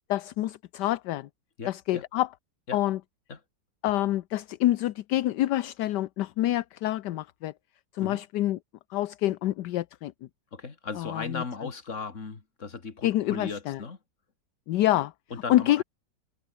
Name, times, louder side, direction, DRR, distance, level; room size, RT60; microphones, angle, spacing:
voice 1, 0.1-1.3 1.7-2.3 2.7-3.0 3.8-7.5 7.9-8.6 8.9-10.1 11.0-11.4 13.0-13.8 14.7-15.1 15.5-15.8, left 14 dB, 75° left, 1.3 m, -27 dB
voice 2, 1.6-2.0 2.7-2.8 3.3-3.4 8.0-8.2 10.5-14.0 15.3-15.8, left 4 dB, 40° left, 2.5 m, -37 dB
omnidirectional pair, 1.9 m